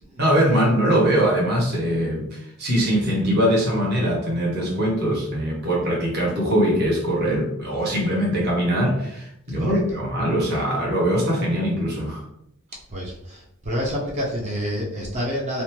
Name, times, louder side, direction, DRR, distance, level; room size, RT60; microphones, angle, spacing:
voice 1, 0.2-12.2, equal, 50° right, -3 dB, 1.0 m, -22 dB
voice 2, 12.9-15.6, equal, 35° right, -3 dB, 0.5 m, -28 dB
2.6 x 2.1 x 3.0 m, 0.76 s
head